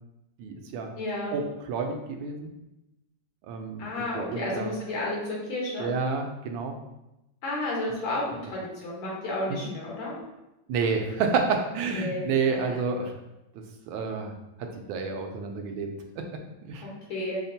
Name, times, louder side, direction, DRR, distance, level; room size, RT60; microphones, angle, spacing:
voice 1, 0.4-0.9 1.3-2.5 3.5-3.8 4.1-4.7 5.8-6.8 9.5-9.6 10.7-13.1 13.9-14.3 14.6-15.9 16.2-16.9, right 5 dB, 80° right, 4 dB, 1.3 m, -29 dB
voice 2, 1.0-1.3 3.8-5.9 7.4-10.2 11.9-12.2 12.5-12.6 16.8-17.4, left 1 dB, 80° left, -4 dB, 1.9 m, -32 dB
5.5 x 2.2 x 2.7 m, 0.92 s
omnidirectional pair, 2.2 m